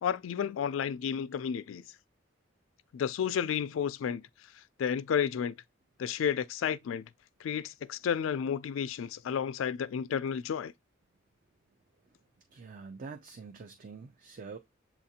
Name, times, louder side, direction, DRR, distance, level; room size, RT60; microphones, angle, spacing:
voice 1, 0.0-1.8 2.9-4.3 4.8-5.6 6.0-7.1 7.4-10.7, left 8 dB, 90° left, 0.3 m, -31 dB
voice 2, 12.5-14.6, right 4 dB, 45° right, 0.4 m, -45 dB
7.1 x 2.5 x 2.8 m
head